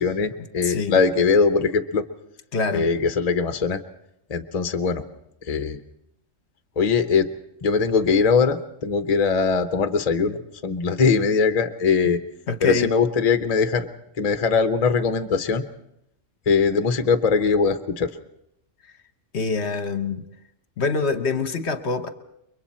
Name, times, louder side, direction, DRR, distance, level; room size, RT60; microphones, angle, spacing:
voice 1, 0.0-2.1 2.7-3.8 4.3-5.0 5.5-5.8 6.8-7.3 7.6-12.2 12.6-13.9 14.2-15.6 16.5-18.1, left 5 dB, 35° left, 9 dB, 0.8 m, -21 dB
voice 2, 0.6-1.0 2.5-2.9 12.5-12.9 19.3-20.2 20.8-22.1, left 4 dB, 60° left, 9 dB, 1.2 m, -25 dB
29.5 x 23.0 x 4.3 m, 0.79 s
omnidirectional pair, 1.4 m